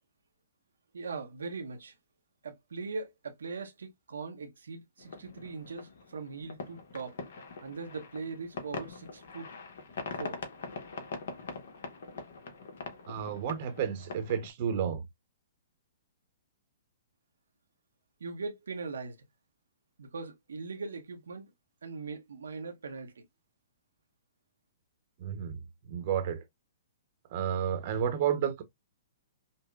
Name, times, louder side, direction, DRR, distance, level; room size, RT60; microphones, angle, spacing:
voice 1, 0.9-1.9 2.4-7.2 7.6-9.5 10.1-10.4 18.2-19.2 20.0-21.5 21.8-23.2, right 4 dB, 90° right, 0.8 m, -40 dB
sound 1, 5.0-14.5, left 4 dB, 70° left, 1.0 m, -43 dB
voice 2, 13.1-15.0 25.2-25.6 25.9-26.4 27.3-28.6, right 8 dB, 45° right, 0.8 m, -31 dB
5.4 x 2.1 x 2.3 m
hypercardioid pair, 140°, 0 cm